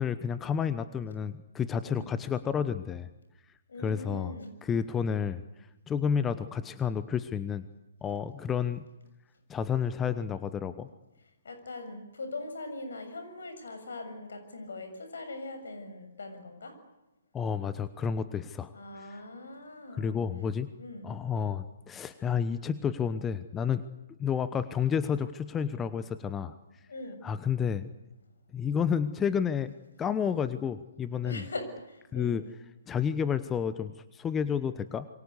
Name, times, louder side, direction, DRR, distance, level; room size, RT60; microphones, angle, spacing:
voice 1, 0.0-3.1 3.8-7.6 8.0-8.8 9.5-10.9 17.3-19.2 19.9-20.7 21.0-23.8 24.2-26.5 27.2-27.9 28.5-29.7 30.0-31.4 32.1-32.4 32.9-35.1, left 7 dB, 15° left, 13 dB, 1.0 m, -30 dB
voice 2, 3.7-4.5 11.4-16.8 18.7-20.2 20.8-21.1 26.9-27.2 31.2-32.4, left 2 dB, 70° left, 8 dB, 7.1 m, -41 dB
27.5 x 23.5 x 8.3 m, 0.98 s
figure-of-eight pair, 130°, 0 cm